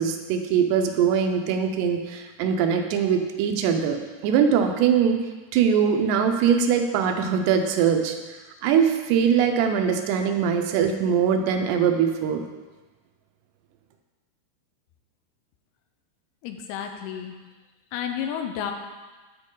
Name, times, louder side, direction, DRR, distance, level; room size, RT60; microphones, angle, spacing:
voice 1, 0.0-5.2 5.5-8.2 8.6-12.4, right 7 dB, 85° right, 5 dB, 2.8 m, -22 dB
voice 2, 16.4-17.4 17.9-18.7, left 8 dB, 80° left, 5 dB, 2.5 m, -31 dB
13.0 x 4.5 x 3.7 m, 1.3 s
omnidirectional pair, 4.8 m